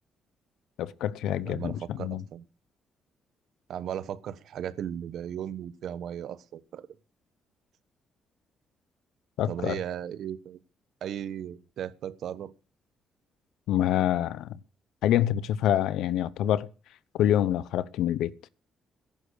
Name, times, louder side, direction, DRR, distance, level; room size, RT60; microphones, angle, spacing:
voice 1, 0.8-2.2 9.4-9.8 13.7-14.6 15.0-16.7 17.1-18.3, left 11 dB, 85° left, 0.9 m, -26 dB
voice 2, 1.4-2.4 3.7-6.9 9.4-10.6 11.0-12.5, right 10 dB, 70° right, 1.2 m, -36 dB
14.5 x 11.0 x 6.7 m
cardioid pair, 90°, 0 cm